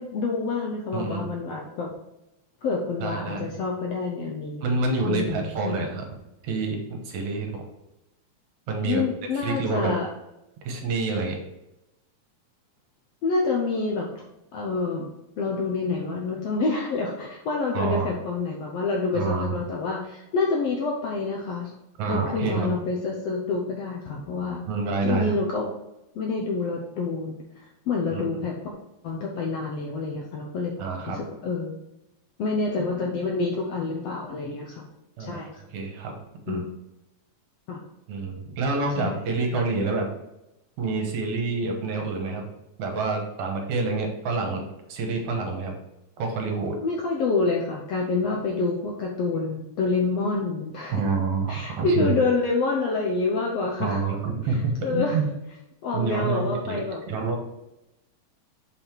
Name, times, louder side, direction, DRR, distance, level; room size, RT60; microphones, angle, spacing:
voice 1, 0.0-1.9 2.6-4.6 5.0-5.9 8.8-10.1 13.2-14.1 14.5-21.7 22.1-24.6 25.0-25.7 26.1-28.7 29.0-30.7 31.1-31.8 32.4-34.9 35.2-35.6 36.5-36.6 37.7-37.8 39.0-39.2 46.8-51.0 51.5-54.0 54.5-55.2 55.8-57.0, left 3 dB, 75° left, 0 dB, 1.5 m, -27 dB
voice 2, 0.9-1.3 3.0-3.5 4.6-6.0 6.4-7.7 8.7-9.0 9.3-9.9 10.7-11.4 17.7-18.1 19.1-19.6 22.0-22.7 24.7-25.4 28.1-28.4 30.8-31.2 35.2-35.4 35.7-36.1 36.5-36.6 38.1-40.1 40.8-42.4 42.8-44.6 44.9-45.8 46.2-46.8 50.9-52.2 53.8-55.3 55.9-56.8 57.1-57.4, right 4 dB, 70° right, 2 dB, 2.4 m, -27 dB
5.8 x 5.5 x 4.4 m, 0.93 s
omnidirectional pair, 3.7 m